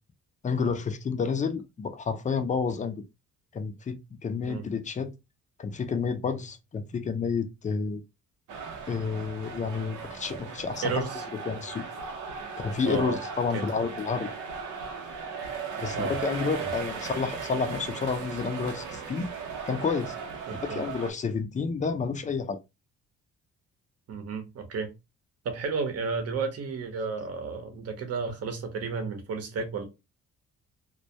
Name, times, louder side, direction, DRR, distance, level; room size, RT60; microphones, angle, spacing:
voice 1, 0.4-3.0 3.5-5.1 5.6-8.0 8.9-11.0 11.3-11.8 12.6-14.3 15.8-19.3 19.6-20.1 20.6-22.6, left 5 dB, 25° left, 0.4 m, -30 dB
sound 1, 8.5-21.1, right 5 dB, 85° right, 0.6 m, -37 dB
voice 2, 10.8-11.2 12.8-13.2 13.5-13.6 16.0-16.1 20.5-20.8 24.1-24.9 25.4-29.8, right 5 dB, 55° right, 0.8 m, -32 dB
2.2 x 2.1 x 2.7 m
cardioid pair, 90°, 30 cm